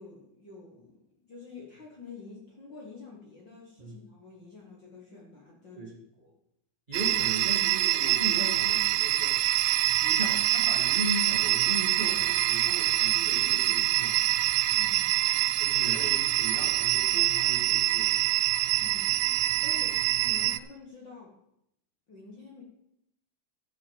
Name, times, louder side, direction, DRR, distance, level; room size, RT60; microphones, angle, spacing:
voice 1, 0.0-6.3 14.7-15.1 18.8-21.4 22.1-22.6, left 4 dB, 40° left, -2 dB, 2.1 m, -48 dB
voice 2, 6.9-9.3 10.0-14.2 15.6-18.1, right 1 dB, 15° right, -2 dB, 2.1 m, -37 dB
sound 1, 6.9-20.6, right 15 dB, 90° right, 2.2 m, -25 dB
12.0 x 6.3 x 7.4 m, 0.78 s
omnidirectional pair, 3.7 m